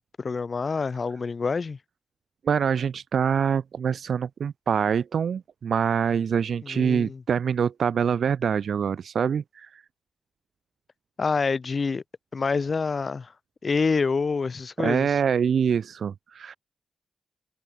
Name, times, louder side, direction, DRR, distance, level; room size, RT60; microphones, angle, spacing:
voice 1, 0.0-1.8 6.6-7.2 11.2-12.0 12.3-13.3 13.6-15.2, left 4 dB, 55° left, 1.3 m, -27 dB
voice 2, 2.4-9.8 14.8-16.6, right 7 dB, 80° right, 2.0 m, -25 dB
cardioid pair, 55°, 0 cm